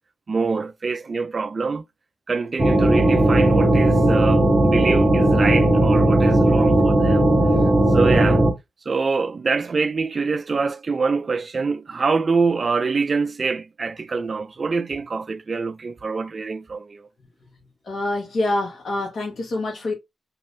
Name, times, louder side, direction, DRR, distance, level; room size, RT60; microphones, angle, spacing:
voice 1, 0.3-1.8 2.3-7.3 7.9-8.4 8.9-17.1, right 4 dB, 45° right, 0.4 m, -25 dB
sound 1, 2.6-8.5, right 1 dB, 25° right, 0.8 m, -17 dB
voice 2, 17.8-19.9, left 2 dB, 60° left, 1.0 m, -26 dB
2.6 x 2.5 x 3.3 m
cardioid pair, 85°, 0 cm